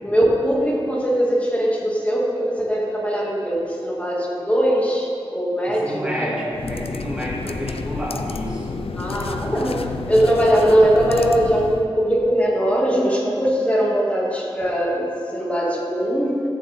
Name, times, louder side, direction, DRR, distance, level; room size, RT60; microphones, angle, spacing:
voice 1, 0.0-6.5 8.9-16.4, equal, 15° left, -5 dB, 2.3 m, -20 dB
voice 2, 5.7-8.7, equal, 10° right, -5 dB, 2.6 m, -29 dB
sound 1, 6.5-11.9, left 4 dB, 85° left, 0.4 m, -30 dB
14.5 x 7.3 x 3.7 m, 2.5 s
wide cardioid pair, 70°, 10 cm